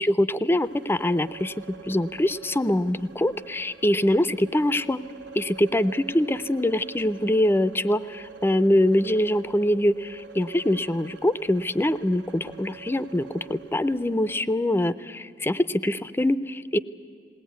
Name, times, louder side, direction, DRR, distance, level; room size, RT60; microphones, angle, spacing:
voice 1, 0.0-5.0 5.3-16.8, left 1 dB, 15° left, 15 dB, 0.5 m, -24 dB
sound 1, 0.6-14.4, right 5 dB, 90° right, 1.4 m, -46 dB
20.0 x 18.0 x 9.3 m, 2.5 s
head